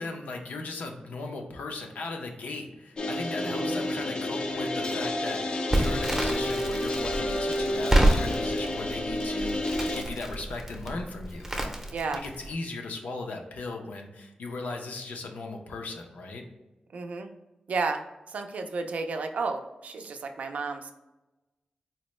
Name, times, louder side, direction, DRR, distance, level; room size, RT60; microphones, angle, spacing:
voice 1, 0.0-11.5 12.1-16.4, left 3 dB, 90° left, 3 dB, 0.5 m, -37 dB
sound 1, 3.0-10.0, left 1 dB, 35° left, 0.3 m, -30 dB
voice 2, 3.4-3.9 11.9-12.2 16.9-17.3 17.7-20.9, right 4 dB, 70° right, 5 dB, 0.4 m, -32 dB
Crackle, 5.7-12.5, right 1 dB, 10° right, 0.6 m, -28 dB
4.1 x 2.0 x 3.0 m, 1.0 s
wide cardioid pair, 135°, 3 cm